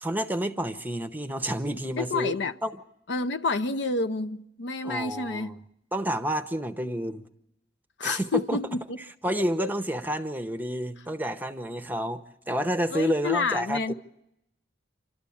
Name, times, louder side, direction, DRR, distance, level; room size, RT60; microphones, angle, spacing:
voice 1, 0.0-2.3 2.6-2.7 4.8-5.6 5.9-7.3 8.0-8.6 9.2-13.9, right 1 dB, 10° right, 0.8 m, -29 dB
voice 2, 2.0-2.5 3.1-5.5 8.0-9.0 9.3-9.7 12.9-13.9, left 3 dB, 65° left, 0.7 m, -29 dB
27.0 x 12.5 x 8.5 m
head